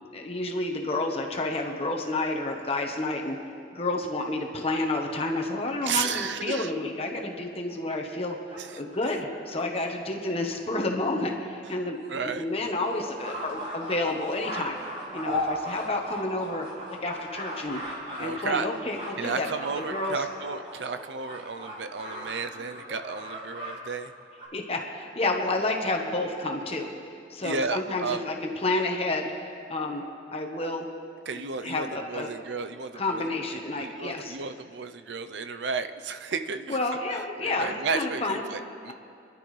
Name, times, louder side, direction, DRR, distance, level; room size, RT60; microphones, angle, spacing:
voice 1, 0.1-3.4 3.7-8.4 8.8-12.0 12.4-14.8 15.1-16.7 17.0-17.8 18.2-19.5 19.8-20.2 24.5-26.9 27.3-28.3 28.6-30.0 30.3-30.9 31.6-32.3 32.9-34.4 36.7-38.4, left 2 dB, 35° left, 2 dB, 1.1 m, -30 dB
voice 2, 5.8-6.7 8.6-8.8 12.1-12.5 15.9-16.0 18.2-18.7 19.2-24.1 27.4-28.2 31.3-33.3 33.8-36.8 37.1-38.9, right 5 dB, 85° right, 9 dB, 0.6 m, -33 dB
sound 1, 7.7-9.3 10.1-10.2 10.4-10.5 10.9-11.0 11.3-11.4 11.9-23.7 24.0-24.5, equal, 40° right, 4.3 m, -37 dB
29.5 x 11.5 x 3.3 m, 2.5 s
head